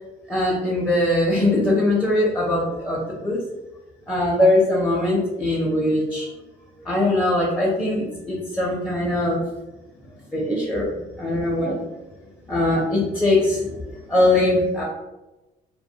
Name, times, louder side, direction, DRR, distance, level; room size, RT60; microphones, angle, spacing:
voice 1, 0.3-3.4 4.1-6.3 6.8-9.4 10.3-11.9 12.5-14.8, left 1 dB, 10° left, -4 dB, 0.5 m, -21 dB
2.2 x 2.2 x 2.6 m, 1.1 s
cardioid pair, 110°, 17 cm